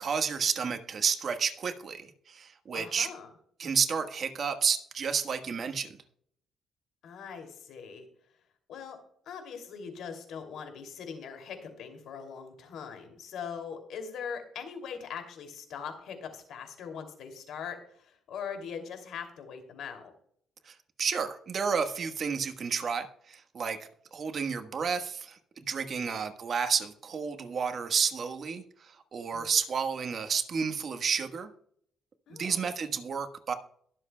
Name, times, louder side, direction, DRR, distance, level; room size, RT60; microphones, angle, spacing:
voice 1, 0.0-3.1 3.6-5.9 20.7-23.8 24.1-31.5 32.3-33.5, right 6 dB, 50° right, 7 dB, 1.4 m, -31 dB
voice 2, 2.7-3.3 7.0-8.0 8.7-9.0 9.3-20.1 26.0-26.2 29.3-29.5 32.3-32.7, left 6 dB, 75° left, 6 dB, 2.7 m, -41 dB
22.0 x 7.7 x 2.3 m, 0.63 s
cardioid pair, 90°, 0 cm